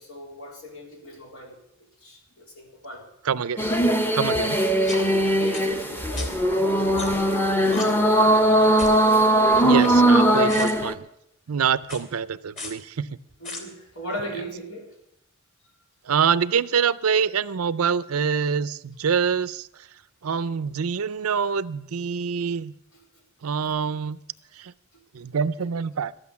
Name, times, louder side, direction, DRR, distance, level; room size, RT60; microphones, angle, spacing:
voice 1, 0.0-3.1 4.8-7.3 7.6-8.4 9.7-10.1 10.4-10.7 13.4-14.9 23.7-23.8, left 1 dB, 80° left, -1 dB, 3.7 m, -38 dB
voice 2, 3.2-3.7 4.1-4.6 9.6-11.1 11.5-13.2 16.1-19.9 20.2-22.7 23.4-24.2 24.6-24.7 25.1-26.1, right 6 dB, 85° right, 16 dB, 0.5 m, -25 dB
sound 1, 3.6-10.9, right 1 dB, 10° left, 0.8 m, -20 dB
sound 2, 4.0-4.1 4.9-5.0 5.5-5.6 6.2-6.3 7.0-7.3 7.7-7.8 8.8-9.0 9.6-10.2 10.5-10.7 11.8-12.0 12.6-12.7 13.4-13.6, left 3 dB, 35° left, 2.8 m, -35 dB
13.0 x 10.5 x 7.0 m, 0.78 s
head